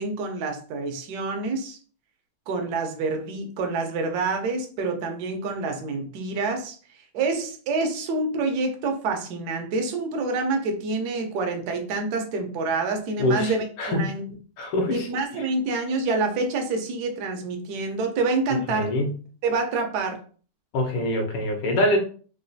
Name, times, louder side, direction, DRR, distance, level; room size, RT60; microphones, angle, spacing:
voice 1, 0.0-1.8 2.5-6.7 7.1-14.2 14.9-18.9 19.4-20.2, right 3 dB, 70° right, 4 dB, 0.9 m, -27 dB
voice 2, 13.2-14.1 14.6-15.1 15.3-15.4 18.7-19.2 20.7-22.0, left 1 dB, 75° left, 2 dB, 1.6 m, -24 dB
4.0 x 2.2 x 2.6 m, 0.41 s
omnidirectional pair, 2.4 m